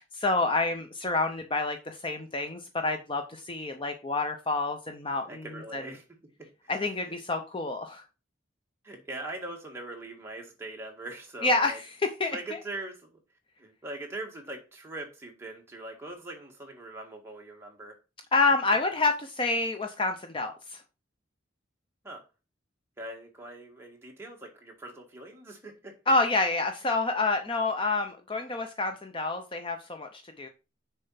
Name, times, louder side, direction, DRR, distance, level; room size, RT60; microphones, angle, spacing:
voice 1, 0.0-5.4 5.7-5.8 6.7-8.0 11.4-11.8 12.2-12.4 18.3-20.8 26.1-30.5, left 3 dB, 25° left, 0.6 m, -28 dB
voice 2, 5.3-6.0 6.4-6.7 7.0-7.1 8.8-11.8 12.3-13.2 13.6-18.0 22.0-22.2 23.0-26.0, right 2 dB, 10° right, 1.7 m, -42 dB
6.8 x 4.4 x 5.6 m
head